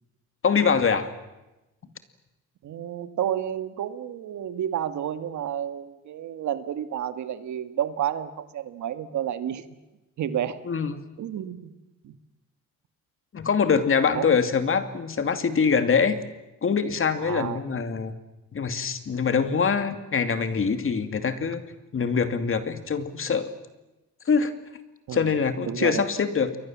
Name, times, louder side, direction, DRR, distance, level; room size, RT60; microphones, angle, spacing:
voice 1, 0.4-1.1 10.7-11.0 13.3-16.2 16.6-18.1 18.5-21.6 21.9-23.5 24.3-24.5 25.1-26.6, left 6 dB, 45° left, 9 dB, 2.5 m, -24 dB
voice 2, 2.6-9.6 10.2-10.6 11.2-11.7 12.0-12.1 14.1-14.4 17.2-17.6 25.1-25.3 25.6-26.0, right 10 dB, 70° right, 11 dB, 1.8 m, -30 dB
29.0 x 22.5 x 7.5 m, 1.0 s
cardioid pair, 90°, 30 cm